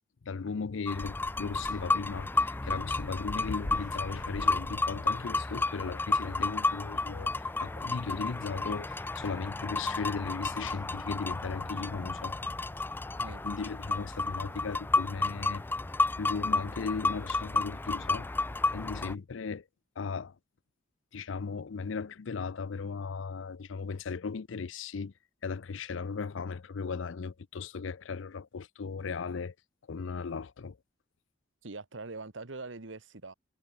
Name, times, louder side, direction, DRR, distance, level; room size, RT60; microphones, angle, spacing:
voice 1, 0.2-7.3 7.6-12.4 13.3-15.6 16.2-18.3 18.7-19.6 20.0-20.3 21.1-25.1 25.4-29.5 29.9-30.8, left 5 dB, 75° left, 0.5 m, -37 dB
sound 1, 0.9-19.2, left 3 dB, 10° left, 0.3 m, -32 dB
voice 2, 31.6-33.3, right 3 dB, 75° right, 1.4 m, -42 dB
head